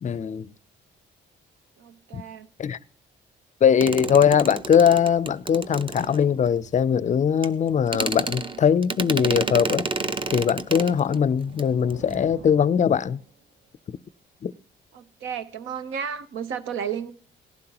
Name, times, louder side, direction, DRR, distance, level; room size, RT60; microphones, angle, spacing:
voice 1, 0.0-0.5 2.1-2.2 2.6-2.8 3.6-9.9 10.3-13.2 13.9-14.0 14.4-14.5, left 8 dB, 40° left, 0.5 m, -21 dB
voice 2, 1.8-2.5 14.9-17.1, right 7 dB, 80° right, 0.9 m, -33 dB
sound 1, 3.8-6.5 7.4-7.5 7.9-11.2 11.5-11.6 11.9-12.1, right 3 dB, 25° right, 0.7 m, -30 dB
sound 2, 10.9-13.6, right 4 dB, 60° right, 2.1 m, -46 dB
17.5 x 11.5 x 2.9 m
cardioid pair, 90°, 20 cm